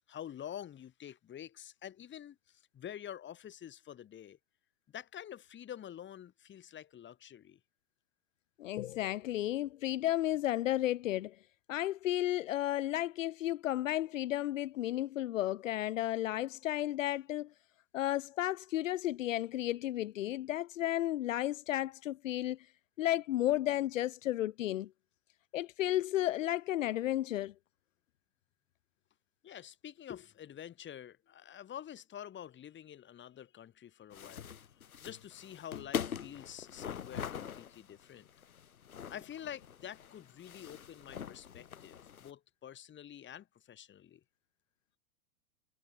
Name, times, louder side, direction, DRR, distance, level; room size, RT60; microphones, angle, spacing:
voice 1, 0.1-4.4 4.9-7.6 29.4-34.5 35.0-38.3 39.1-44.2, left 10 dB, 25° left, 6.6 m, -48 dB
voice 2, 8.6-11.4 11.7-17.5 17.9-22.6 23.0-24.9 25.5-27.5, left 14 dB, 65° left, 2.3 m, -33 dB
sound 1, 34.1-42.3, left 8 dB, 85° left, 1.5 m, -43 dB
hypercardioid pair, 110°, 41 cm